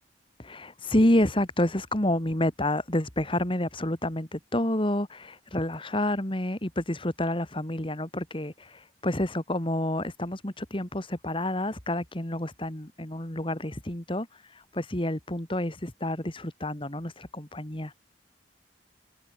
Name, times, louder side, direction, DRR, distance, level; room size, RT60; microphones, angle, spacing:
voice 1, 0.4-17.9, left 1 dB, 30° left, 2.5 m, -29 dB
head